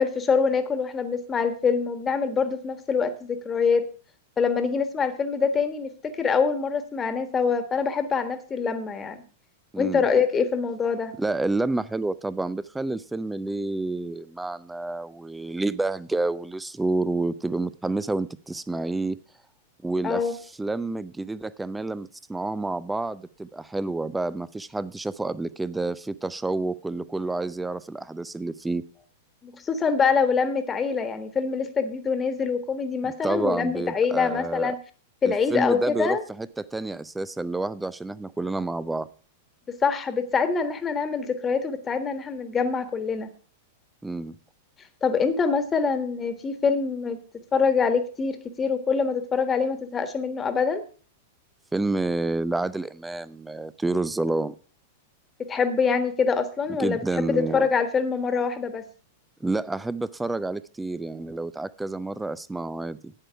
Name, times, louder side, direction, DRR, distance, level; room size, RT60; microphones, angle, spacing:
voice 1, 0.0-3.8 4.4-5.9 6.2-9.2 9.8-11.1 20.0-20.3 29.4-34.8 35.2-36.2 39.7-43.3 45.0-47.2 47.5-50.8 55.5-58.8, left 5 dB, 20° left, 10 dB, 1.5 m, -25 dB
voice 2, 9.7-10.0 11.2-19.2 19.8-20.2 20.6-28.8 33.0-34.7 35.2-39.1 44.0-44.4 51.7-54.5 56.8-57.7 59.4-63.1, right 2 dB, 5° right, 17 dB, 0.5 m, -29 dB
11.0 x 9.1 x 4.7 m, 0.39 s
figure-of-eight pair, 95°, 0 cm